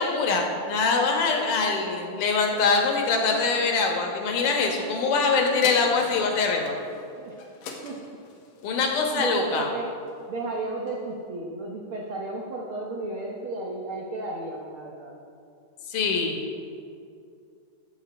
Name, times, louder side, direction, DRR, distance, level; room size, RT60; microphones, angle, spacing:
voice 1, 0.0-6.7 8.6-9.7 15.9-16.4, left 4 dB, 70° left, 2 dB, 2.6 m, -23 dB
sound 1, 5.6-10.4 10.9-11.0, left 3 dB, 90° left, 2.9 m, -41 dB
voice 2, 9.1-9.9 10.3-15.1, right 2 dB, 90° right, -1 dB, 1.1 m, -33 dB
16.5 x 7.5 x 4.2 m, 2.5 s
omnidirectional pair, 3.9 m